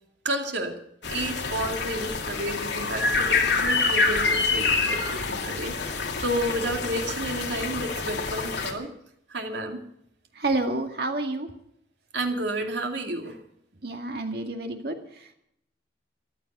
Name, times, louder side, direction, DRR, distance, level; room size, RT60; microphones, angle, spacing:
voice 1, 0.2-0.8 1.1-8.9 9.3-9.8 12.1-13.4, right 1 dB, 75° right, 3 dB, 2.4 m, -31 dB
sound 1, 1.0-8.7, left 4 dB, 75° left, 2.3 m, -26 dB
voice 2, 10.3-11.5 13.8-15.3, right 2 dB, 60° right, 4 dB, 2.1 m, -29 dB
14.5 x 12.0 x 6.7 m, 0.72 s
head